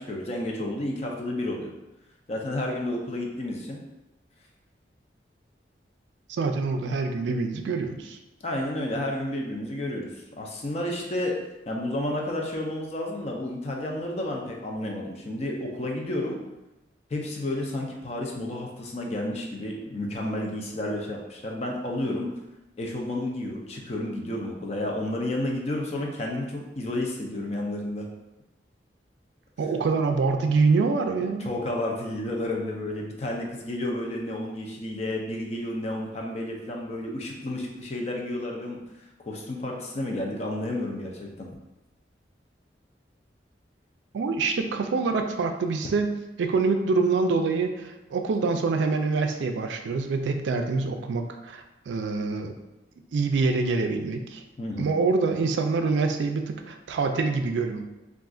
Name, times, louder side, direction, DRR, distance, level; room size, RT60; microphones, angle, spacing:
voice 1, 0.0-1.7 2.3-3.8 8.4-10.1 10.4-16.4 17.1-22.3 22.8-28.1 31.4-38.8 39.3-41.5 54.6-54.9, left 1 dB, 35° left, 0 dB, 0.5 m, -31 dB
voice 2, 6.3-8.2 29.6-31.5 44.1-46.1 46.4-52.5 53.1-54.4 54.8-57.8, right 4 dB, 85° right, 5 dB, 0.3 m, -25 dB
2.4 x 2.4 x 3.6 m, 0.98 s
head